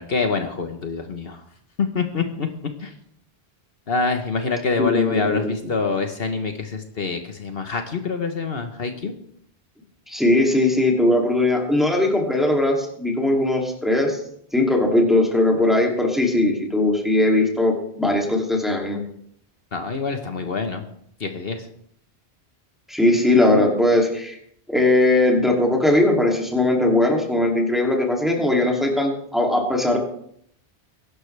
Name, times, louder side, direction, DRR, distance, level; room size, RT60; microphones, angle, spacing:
voice 1, 0.0-1.4 1.8-2.5 2.8-2.9 3.9-9.1 19.7-20.8 21.2-21.7, left 4 dB, 65° left, 6 dB, 1.3 m, -26 dB
voice 2, 4.8-5.5 10.1-14.2 14.5-19.0 22.9-24.4 24.7-30.0, left 1 dB, ahead, -1 dB, 2.7 m, -19 dB
22.0 x 11.5 x 3.4 m, 0.68 s
omnidirectional pair, 1.1 m